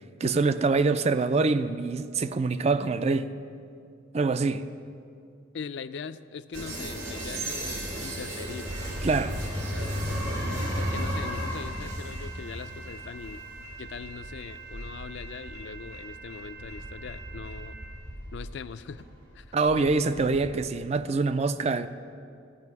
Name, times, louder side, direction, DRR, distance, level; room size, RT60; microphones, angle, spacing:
voice 1, 0.2-3.3 4.1-4.7 9.0-9.4 19.5-21.9, right 3 dB, 35° right, 0.4 m, -25 dB
voice 2, 5.5-9.4 9.7-9.9 10.7-13.4 13.8-17.8 18.3-19.0 19.3-19.9, left 5 dB, 65° left, 0.4 m, -41 dB
sound 1, 6.5-20.6, equal, 80° right, 2.5 m, -35 dB
14.5 x 5.3 x 9.4 m
head